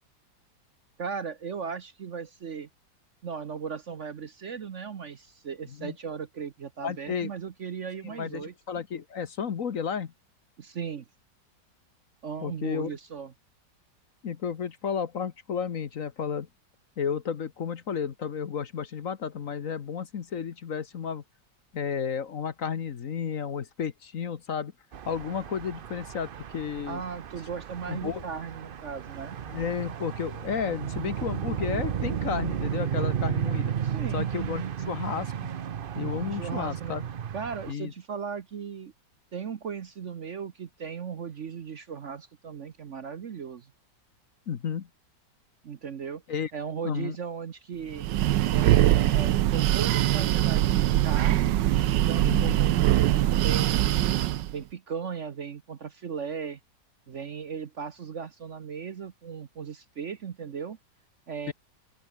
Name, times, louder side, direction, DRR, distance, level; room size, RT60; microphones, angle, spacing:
voice 1, 1.0-2.7 3.2-8.5 10.6-11.0 12.2-13.3 26.9-29.4 33.8-34.3 36.3-37.0 37.3-38.9 39.3-43.7 45.6-46.2 46.5-48.1 48.5-51.5 52.1-54.1 54.5-56.6 57.1-60.8 61.3-61.5, right 6 dB, 50° right, 1.1 m, -37 dB
voice 2, 6.8-7.3 8.0-10.1 12.4-12.9 14.2-16.5 17.0-21.2 21.7-24.7 25.0-27.0 27.9-28.2 29.5-33.7 34.1-35.5 36.0-37.0 37.7-37.9 44.5-44.9 46.3-46.5 46.8-47.2 52.2-52.6 61.5-61.6, left 7 dB, 50° left, 1.4 m, -32 dB
sound 1, 24.9-37.7, right 8 dB, 70° right, 0.5 m, -33 dB
Breathing, 47.9-54.5, right 13 dB, 85° right, 1.4 m, -22 dB
open air
omnidirectional pair, 1.9 m